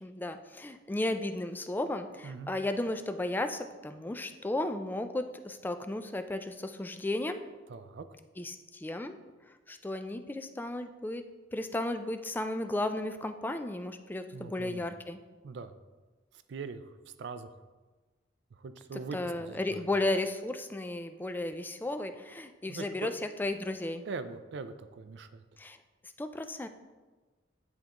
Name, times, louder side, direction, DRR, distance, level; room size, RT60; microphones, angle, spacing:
voice 1, 0.0-7.4 8.4-9.1 9.7-11.2 11.5-15.2 19.1-24.0 25.6-25.8 26.2-26.7, left 2 dB, 10° left, 8 dB, 0.3 m, -34 dB
voice 2, 7.7-8.1 14.3-14.8 15.4-15.7 16.5-17.6 18.5-19.9 22.7-23.1 24.0-25.4, right 4 dB, 65° right, 11 dB, 0.4 m, -42 dB
9.9 x 3.5 x 3.0 m, 1.3 s
head